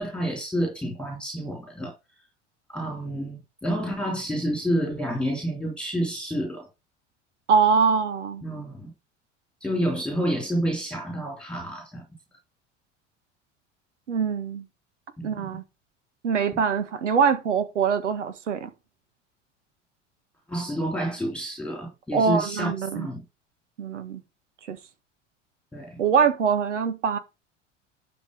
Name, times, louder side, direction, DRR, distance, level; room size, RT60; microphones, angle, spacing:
voice 1, 0.0-1.9 2.7-6.7 8.4-8.9 9.6-12.0 15.2-15.6 20.5-23.2 25.7-26.0, equal, 5° left, 3.3 m, -29 dB
voice 2, 7.5-8.4 14.1-14.6 15.2-15.6 16.2-18.7 22.1-23.1 23.8-24.2 24.7-24.8 26.0-27.2, right 6 dB, 70° right, 1.7 m, -23 dB
11.5 x 4.3 x 6.6 m
figure-of-eight pair, 70°, 37 cm